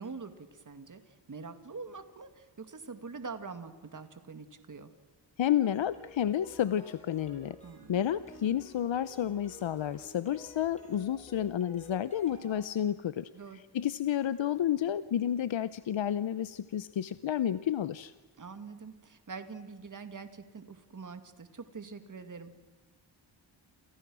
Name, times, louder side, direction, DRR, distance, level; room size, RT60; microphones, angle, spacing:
voice 1, 0.0-4.9 7.6-7.9 13.3-13.6 18.4-22.5, right 4 dB, 40° right, 9 dB, 2.1 m, -44 dB
voice 2, 5.4-7.6 7.9-18.1, left 10 dB, 75° left, 14 dB, 0.8 m, -31 dB
Arcade Game Loop, 5.7-12.6, left 2 dB, 15° left, 8.0 m, -52 dB
28.5 x 28.5 x 6.3 m, 1.3 s
wide cardioid pair, 165°, 46 cm